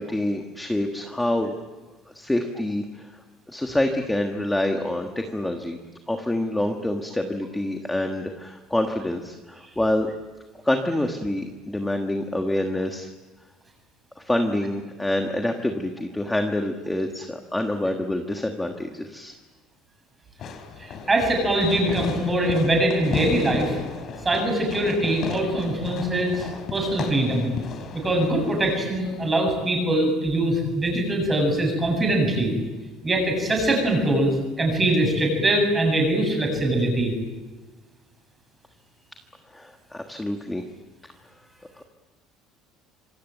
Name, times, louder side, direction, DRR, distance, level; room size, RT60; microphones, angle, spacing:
voice 1, 0.0-1.5 2.1-3.1 3.5-5.8 6.1-10.1 10.6-13.1 14.2-19.3 39.5-40.6 41.7-41.8, left 1 dB, 5° left, 4 dB, 1.4 m, -26 dB
Fireworks, 20.4-29.4, left 5 dB, 35° left, 3.2 m, -35 dB
voice 2, 20.8-23.8 24.2-26.4 26.7-27.5 27.9-32.5 33.0-34.3 34.6-37.1, right 1 dB, 15° right, 2 dB, 7.7 m, -22 dB
26.5 x 24.5 x 9.2 m, 1.2 s
cardioid pair, 175°, 0 cm